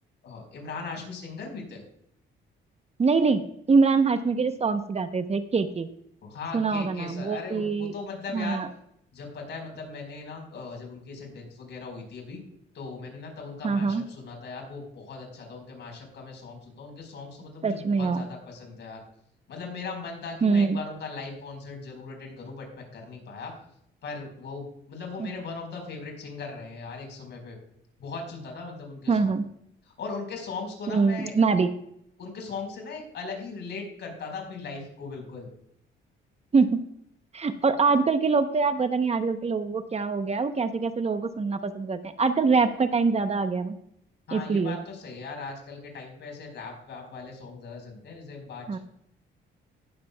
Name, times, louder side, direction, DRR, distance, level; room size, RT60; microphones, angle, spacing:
voice 1, 0.2-1.8 6.2-8.6 9.1-12.4 12.7-19.0 19.5-23.5 24.0-27.6 28.0-29.3 29.8-31.4 32.2-35.5 44.3-48.8, left 4 dB, 60° left, 1 dB, 4.5 m, -39 dB
voice 2, 3.0-3.4 3.7-5.9 6.5-7.9 8.3-8.7 13.6-14.0 17.6-18.3 20.4-20.8 25.2-25.3 29.1-29.5 30.9-31.7 36.5-36.8 37.3-43.8 44.3-44.8 48.7-48.8, right 4 dB, 35° right, 9 dB, 0.8 m, -24 dB
18.5 x 7.4 x 2.3 m, 0.72 s
cardioid pair, 90°, 20 cm